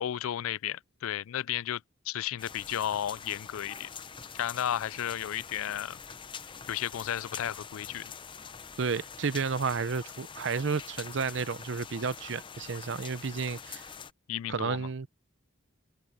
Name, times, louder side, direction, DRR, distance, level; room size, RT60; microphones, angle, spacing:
voice 1, 0.0-1.8 2.1-3.9 4.3-6.0 6.7-8.1 14.3-14.9, left 10 dB, 90° left, 0.4 m, -33 dB
sound 1, 2.4-14.1, left 6 dB, 25° left, 0.6 m, -45 dB
voice 2, 8.8-13.8 14.5-15.1, right 5 dB, 60° right, 0.6 m, -32 dB
head